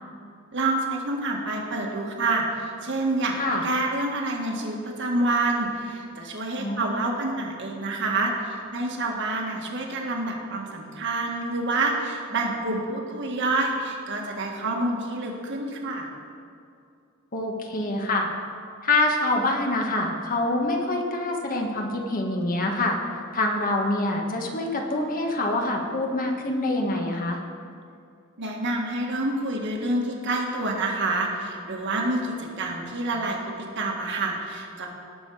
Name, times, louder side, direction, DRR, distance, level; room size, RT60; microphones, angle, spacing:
voice 1, 0.5-16.1 28.4-34.9, right 2 dB, 60° right, 0 dB, 1.7 m, -27 dB
voice 2, 6.6-7.0 17.3-18.3 18.8-23.0 23.3-27.4, left 2 dB, 40° left, 1 dB, 1.3 m, -25 dB
18.0 x 6.4 x 4.8 m, 2.4 s
head